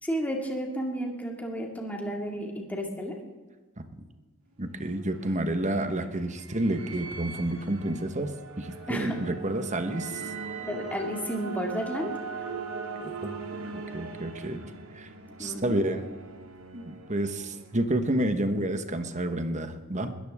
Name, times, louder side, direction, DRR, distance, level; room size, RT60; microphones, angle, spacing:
voice 1, 0.0-3.2 8.9-9.1 10.6-12.1 15.4-15.8, equal, 10° left, 0 dB, 2.2 m, -32 dB
sound 1, 4.5-18.3, right 4 dB, 80° right, 2.2 m, -40 dB
voice 2, 4.6-8.3 8.6-10.2 13.0-13.4 13.9-14.6 14.9-15.1 15.4-16.1 16.7-20.1, right 1 dB, 35° right, 8 dB, 1.3 m, -29 dB
21.0 x 14.0 x 3.6 m, 1.3 s
head